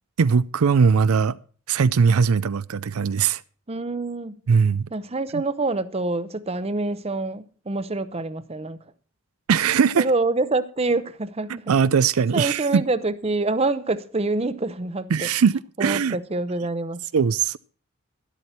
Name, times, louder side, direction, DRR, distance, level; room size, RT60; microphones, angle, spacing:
voice 1, 0.2-1.4 1.7-3.4 4.5-4.9 5.3-5.4 9.5-10.1 11.7-12.8 15.1-16.2 17.1-17.6, right 6 dB, 85° right, 0.5 m, -20 dB
voice 2, 3.7-4.3 4.9-8.8 9.9-11.7 12.3-15.3 15.8-17.0, right 2 dB, 30° right, 0.7 m, -26 dB
12.5 x 11.5 x 4.3 m
head